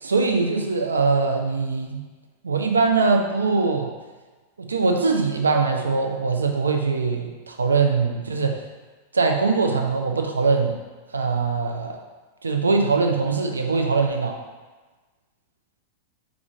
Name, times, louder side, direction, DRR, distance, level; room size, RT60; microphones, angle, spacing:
voice 1, 0.0-2.0 2.4-3.9 4.7-8.6 9.1-10.8 11.1-12.0 12.4-14.4, right 4 dB, 75° right, 3 dB, 0.5 m, -22 dB
4.9 x 2.5 x 3.6 m, 1.3 s
figure-of-eight pair, 90°, 0 cm